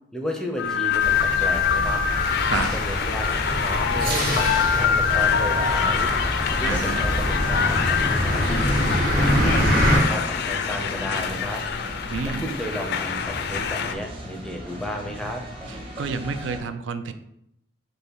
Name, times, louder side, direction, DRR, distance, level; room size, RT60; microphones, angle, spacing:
voice 1, 0.1-2.0 2.7-6.1 6.6-8.8 9.1-11.6 12.2-15.4, equal, 5° left, 1 dB, 0.5 m, -33 dB
sound 1, 0.6-13.9, left 7 dB, 60° left, 0.4 m, -25 dB
sound 2, 1.0-10.0, equal, 55° right, 1.2 m, -25 dB
sound 3, 4.0-16.6, equal, 30° right, 0.9 m, -36 dB
voice 2, 6.6-7.0 12.1-12.5 16.0-17.1, right 5 dB, 85° right, 10 dB, 0.4 m, -29 dB
5.3 x 2.1 x 4.6 m, 0.79 s
head